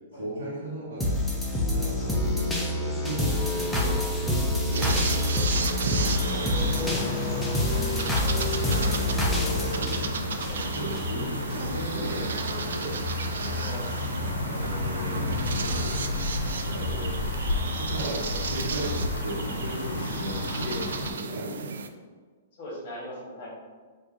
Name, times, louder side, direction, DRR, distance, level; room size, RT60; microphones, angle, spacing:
voice 1, 0.1-1.2 1.7-5.4 8.7-10.1 10.7-13.0 14.3-16.4 16.6-17.3 17.7-21.7, right 1 dB, 50° right, -10 dB, 1.1 m, -37 dB
sound 1, 1.0-11.0 11.5-11.6, left 1 dB, 5° left, 0.4 m, -27 dB
sound 2, 4.7-21.9, right 5 dB, 85° right, 0.3 m, -34 dB
sound 3, 5.9-21.1, left 2 dB, 75° left, 0.6 m, -32 dB
voice 2, 6.7-7.7 10.4-10.6 13.5-13.9 22.6-23.6, left 1 dB, 40° left, -3 dB, 1.1 m, -40 dB
4.5 x 2.5 x 2.6 m, 1.5 s
hypercardioid pair, 175°, 0 cm